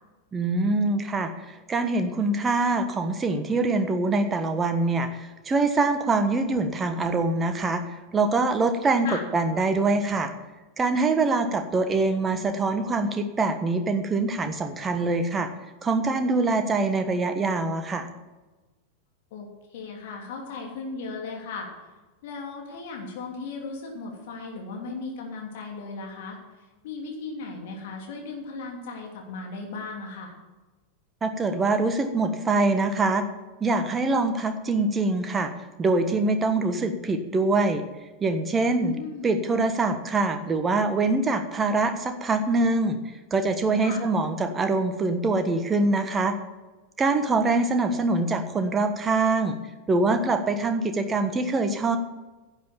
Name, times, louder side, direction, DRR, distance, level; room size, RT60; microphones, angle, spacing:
voice 1, 0.3-9.1 9.3-10.3 10.8-15.5 15.8-18.1 31.2-33.2 33.6-35.5 35.8-37.8 38.2-38.9 39.2-43.0 43.3-46.4 47.0-49.6 49.9-52.0, right 3 dB, 20° right, 7 dB, 1.3 m, -24 dB
voice 2, 19.3-21.7 22.2-26.4 26.8-30.3 38.6-39.3 43.8-44.0, left 3 dB, 55° left, 0 dB, 2.9 m, -36 dB
11.0 x 8.1 x 7.3 m, 1.2 s
figure-of-eight pair, 90°, 0 cm